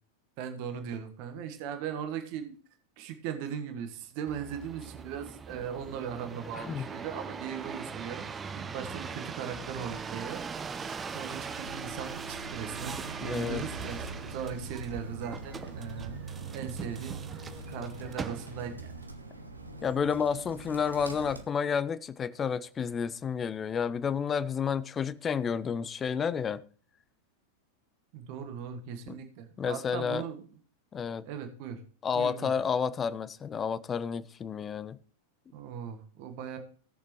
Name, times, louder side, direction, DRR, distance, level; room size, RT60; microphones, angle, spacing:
voice 1, 0.4-2.5 3.0-10.4 10.8-16.2 16.5-17.2 17.7-18.9 28.1-30.4 31.2-31.8 32.1-32.5 35.5-36.6, right 7 dB, 45° right, 1.4 m, -39 dB
sound 1, 4.3-18.8 19.4-19.9, right 5 dB, 20° right, 0.7 m, -41 dB
Bird, 11.6-21.4, right 2 dB, 80° right, 1.1 m, -43 dB
voice 2, 13.2-13.6 19.8-26.6 29.1-29.2 29.6-30.2 30.9-31.2 32.0-35.0, left 6 dB, 20° left, 0.5 m, -30 dB
17.5 x 6.7 x 3.1 m
figure-of-eight pair, 90°, 0 cm